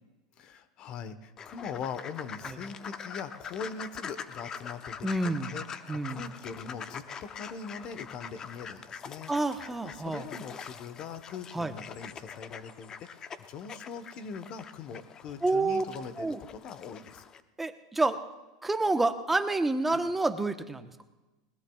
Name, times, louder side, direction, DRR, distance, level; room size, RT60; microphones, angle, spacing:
voice 1, 0.4-5.8 6.1-9.3 9.8-17.2 19.9-20.0, left 6 dB, 45° left, 12 dB, 1.1 m, -41 dB
sound 1, 1.4-17.4, left 6 dB, 30° left, 0.8 m, -44 dB
voice 2, 5.0-5.5 5.9-6.2 9.3-10.2 11.5-11.7 15.4-15.8 16.2-16.4 17.6-18.2 18.6-20.9, right 2 dB, 10° right, 8 dB, 1.0 m, -28 dB
21.0 x 20.0 x 2.4 m, 1.1 s
supercardioid pair, 115°, 2 cm